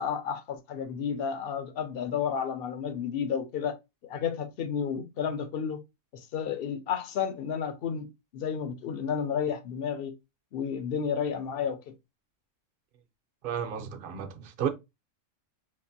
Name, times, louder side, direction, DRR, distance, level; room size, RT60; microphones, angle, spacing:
voice 1, 0.0-3.8 4.0-5.8 6.1-10.1 10.5-11.9, left 7 dB, 55° left, 0.8 m, -31 dB
voice 2, 13.4-14.7, right 8 dB, 55° right, 0.7 m, -32 dB
4.4 x 2.5 x 2.6 m
omnidirectional pair, 1.3 m